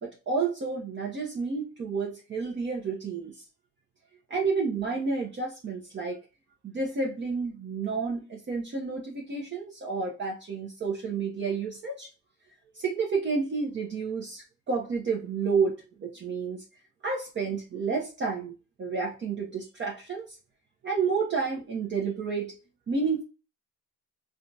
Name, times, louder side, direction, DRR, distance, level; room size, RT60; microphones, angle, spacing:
voice 1, 0.0-3.3 4.3-6.2 6.6-12.1 12.8-16.6 17.0-18.5 18.8-20.3 20.8-22.5 22.9-23.2, right 4 dB, 40° right, -2 dB, 0.8 m, -30 dB
3.6 x 2.3 x 2.6 m, 0.33 s
cardioid pair, 90°, 30 cm